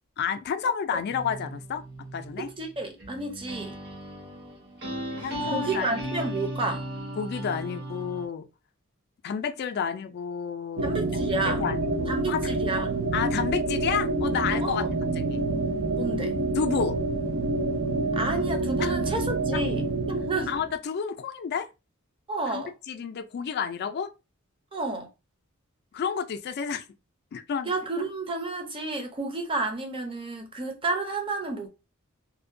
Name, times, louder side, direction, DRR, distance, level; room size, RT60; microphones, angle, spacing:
voice 1, 0.2-1.8 2.1-2.5 5.2-6.0 7.2-8.5 9.2-12.5 13.1-14.9 15.1-15.4 16.6-17.0 18.8-19.0 19.5-19.6 20.5-21.7 22.5-24.1 25.9-26.9 27.3-27.7, left 7 dB, 50° left, 0.3 m, -30 dB
sound 1, 1.1-8.3, right 1 dB, 55° right, 1.0 m, -36 dB
voice 2, 2.4-3.8 5.2-6.8 10.8-11.6 12.1-12.9 14.6-14.9 15.5-16.4 18.2-20.5 22.3-22.7 24.7-25.1 27.7-31.7, right 3 dB, 25° right, 0.5 m, -31 dB
sound 2, 10.8-20.7, right 2 dB, 75° right, 0.5 m, -27 dB
2.6 x 2.1 x 2.5 m
head